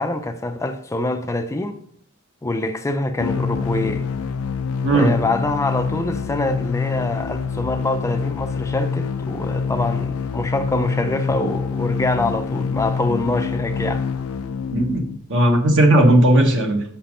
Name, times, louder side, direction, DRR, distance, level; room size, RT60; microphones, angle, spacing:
voice 1, 0.0-1.8 2.4-4.0 4.9-14.1, left 2 dB, 15° left, 0.4 m, -25 dB
sound 1, 3.2-15.2, left 5 dB, 90° left, 0.5 m, -26 dB
voice 2, 14.7-15.0 15.3-16.8, right 1 dB, 60° right, 1.3 m, -15 dB
6.0 x 5.8 x 5.2 m
head